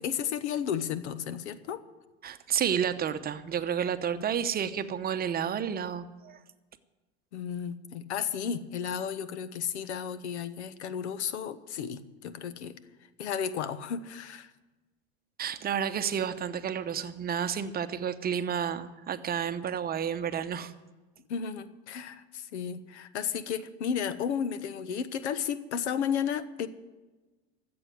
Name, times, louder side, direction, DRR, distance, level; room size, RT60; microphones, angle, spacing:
voice 1, 0.0-1.8 4.1-4.2 7.3-12.7 13.2-14.5 21.3-26.7, left 8 dB, 85° left, 14 dB, 1.0 m, -33 dB
voice 2, 2.2-6.4 15.4-20.7, right 8 dB, 25° right, 11 dB, 0.9 m, -31 dB
14.0 x 7.8 x 9.3 m, 1.2 s
hypercardioid pair, 105°, 33 cm